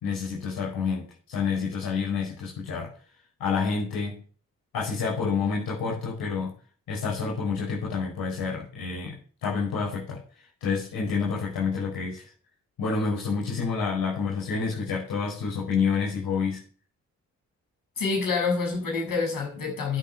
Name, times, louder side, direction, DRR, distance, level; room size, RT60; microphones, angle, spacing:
voice 1, 0.0-2.9 3.4-4.2 4.7-6.5 6.9-9.2 9.4-10.2 10.6-12.3 12.8-16.6, left 5 dB, 85° left, -6 dB, 5.7 m, -28 dB
voice 2, 18.0-20.0, left 4 dB, 65° left, 1 dB, 7.4 m, -27 dB
10.5 x 8.5 x 8.2 m, 0.40 s
supercardioid pair, 55°, 35 cm